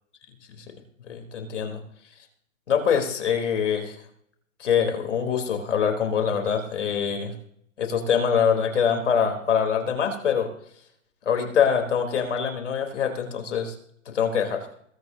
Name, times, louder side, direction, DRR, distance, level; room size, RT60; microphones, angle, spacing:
voice 1, 1.1-1.8 2.7-4.0 4.6-7.3 7.8-10.5 11.2-13.8 14.1-14.7, left 7 dB, 65° left, 4 dB, 3.7 m, -24 dB
21.5 x 14.0 x 2.8 m, 0.67 s
hypercardioid pair, 180°, 40 cm